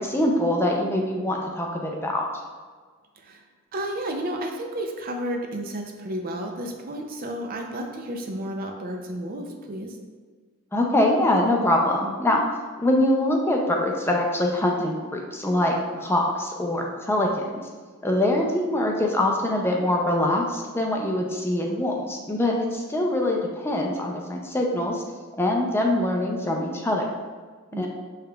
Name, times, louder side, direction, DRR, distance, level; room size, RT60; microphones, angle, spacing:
voice 1, 0.0-2.3 10.7-12.4 12.8-17.7 18.0-25.0 25.4-27.1 27.8-27.9, left 1 dB, 10° left, 0 dB, 0.4 m, -24 dB
voice 2, 3.2-3.5 3.7-10.0 27.7-27.9, right 1 dB, 45° right, 3 dB, 0.5 m, -32 dB
6.7 x 3.2 x 2.3 m, 1.5 s
head